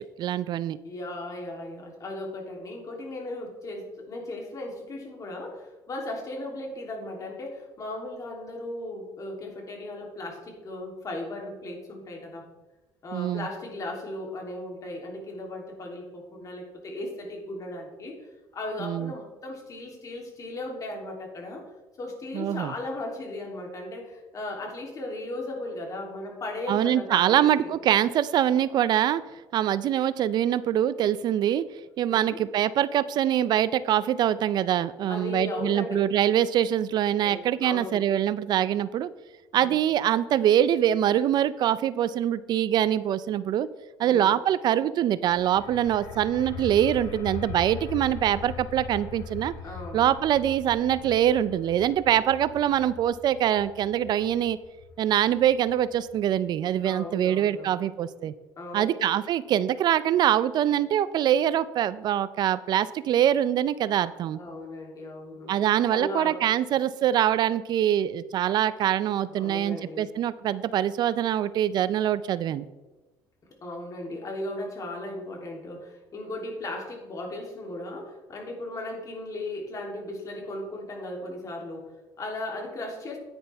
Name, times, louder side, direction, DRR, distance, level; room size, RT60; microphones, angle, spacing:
voice 1, 0.0-0.8 13.1-13.5 18.8-19.1 22.3-22.7 26.7-29.2 29.5-31.6 32.0-39.1 39.5-43.7 44.0-49.5 49.9-54.6 55.0-58.3 58.7-64.4 65.5-72.6, right 11 dB, 60° right, 16 dB, 0.4 m, -24 dB
voice 2, 0.8-12.4 13.0-21.7 22.0-27.7 32.1-32.4 35.1-36.0 36.3-36.4 37.2-38.0 39.5-39.8 44.0-44.4 49.6-50.1 56.8-57.8 58.6-58.9 64.3-66.4 69.3-70.1 73.6-83.2, left 2 dB, 45° left, 0 dB, 3.0 m, -37 dB
sound 1, 45.2-56.7, left 4 dB, 75° left, 1.3 m, -41 dB
10.0 x 9.7 x 3.5 m, 1.1 s
supercardioid pair, 85°, 8 cm